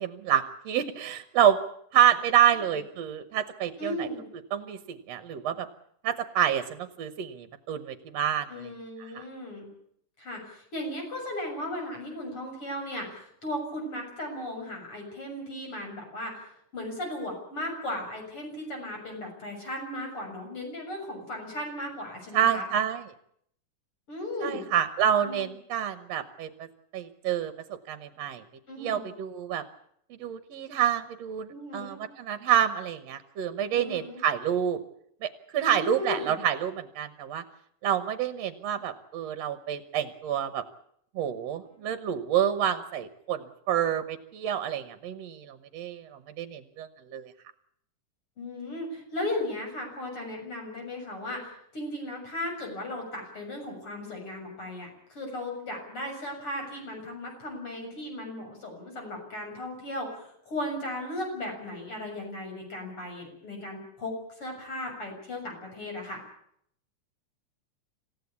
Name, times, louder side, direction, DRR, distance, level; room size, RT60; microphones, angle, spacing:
voice 1, 0.0-1.6 1.9-4.1 4.5-5.7 6.0-8.7 9.1-9.2 22.3-23.0 24.4-26.7 26.9-28.4 28.8-29.6 30.2-34.8 35.2-37.4 37.8-40.6 41.2-47.3, right 9 dB, 65° right, 10 dB, 2.0 m, -28 dB
voice 2, 3.8-4.2 8.5-9.7 10.2-16.4 16.7-22.6 24.1-24.6 25.2-25.5 28.7-29.1 31.5-32.1 33.7-34.2 35.6-36.3 41.8-42.1 48.4-66.2, left 1 dB, 40° left, 2 dB, 7.8 m, -36 dB
27.0 x 15.5 x 8.4 m, 0.69 s
omnidirectional pair, 3.7 m